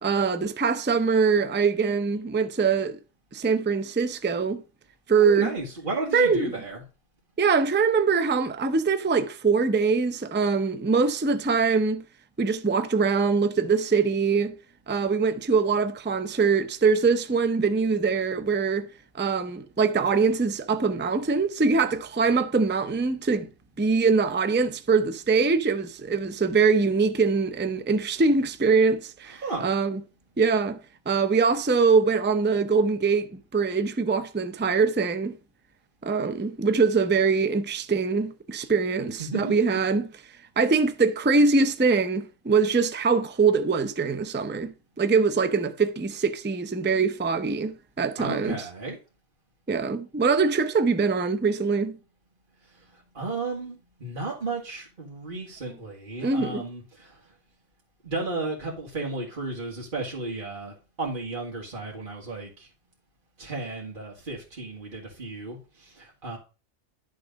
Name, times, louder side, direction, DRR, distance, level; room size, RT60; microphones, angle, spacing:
voice 1, 0.0-3.0 3.3-4.6 5.1-5.5 6.1-6.4 7.4-12.0 12.4-14.5 14.9-18.9 19.2-23.5 23.8-30.0 30.4-30.8 31.1-35.4 36.0-40.1 40.6-48.6 49.7-52.0 56.2-56.6, right 4 dB, 15° right, 0.3 m, -23 dB
voice 2, 5.2-6.8 29.2-29.7 39.2-39.8 48.2-49.0 52.6-57.3 58.0-62.7 63.4-66.4, right 3 dB, 40° right, 2.1 m, -34 dB
11.5 x 3.9 x 5.2 m
omnidirectional pair, 1.3 m